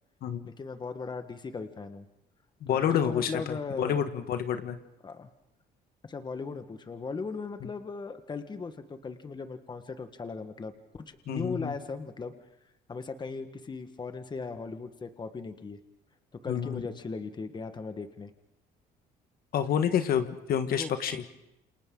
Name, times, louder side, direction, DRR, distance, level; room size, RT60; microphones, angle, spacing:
voice 1, 0.4-2.0 2.7-4.0 5.0-5.3 6.0-10.7 11.0-12.3 12.9-15.8 16.3-18.3 20.7-20.9, left 4 dB, 25° left, 9 dB, 1.4 m, -38 dB
voice 2, 2.6-4.8 11.3-11.7 16.5-16.8 19.5-21.2, left 8 dB, 60° left, 8 dB, 1.5 m, -28 dB
29.0 x 28.0 x 3.8 m, 0.85 s
cardioid pair, 110°, 17 cm